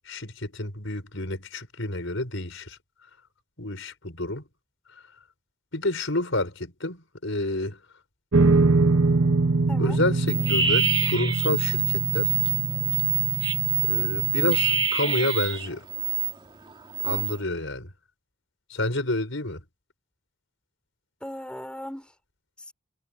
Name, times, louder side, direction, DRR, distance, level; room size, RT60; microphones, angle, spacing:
voice 1, 0.1-2.8 3.6-4.4 5.7-7.8 9.8-12.3 13.9-15.8 17.0-17.9 18.7-19.6, left 2 dB, 65° left, 5.9 m, -29 dB
sound 1, 8.3-14.9, right 3 dB, 65° right, 1.2 m, -24 dB
sound 2, 10.3-16.3 16.7-17.4, right 7 dB, 25° right, 2.0 m, -25 dB
voice 2, 17.0-17.6 21.2-22.1 22.6-22.7, left 1 dB, 5° left, 5.2 m, -39 dB
head